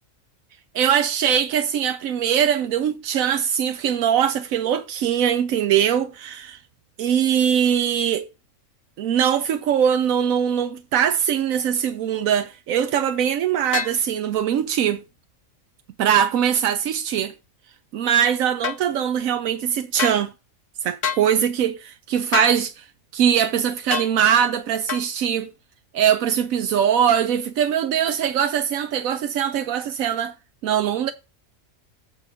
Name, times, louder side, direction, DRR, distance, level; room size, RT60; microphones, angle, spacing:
voice 1, 0.7-6.5 7.0-8.3 9.0-15.0 16.0-17.3 17.9-20.3 20.8-22.8 23.1-25.5 25.9-30.3 30.6-31.1, right 9 dB, 85° right, 1.1 m, -21 dB
sound 1, 13.7-14.0 18.6-18.8 20.0-20.2 21.0-21.3 22.3-22.6 23.9-24.1 24.9-25.1, left 6 dB, 50° left, 0.9 m, -26 dB
8.4 x 4.0 x 6.4 m
omnidirectional pair, 1.4 m